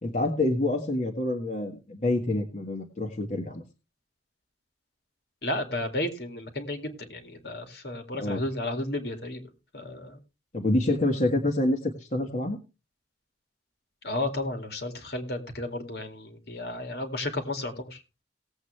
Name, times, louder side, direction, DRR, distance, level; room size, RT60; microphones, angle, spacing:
voice 1, 0.0-3.6 8.2-8.4 10.5-12.6, left 1 dB, 45° left, 1.6 m, -27 dB
voice 2, 5.4-9.4 9.7-10.2 14.0-18.0, left 1 dB, 65° left, 2.4 m, -33 dB
18.5 x 8.1 x 3.3 m
head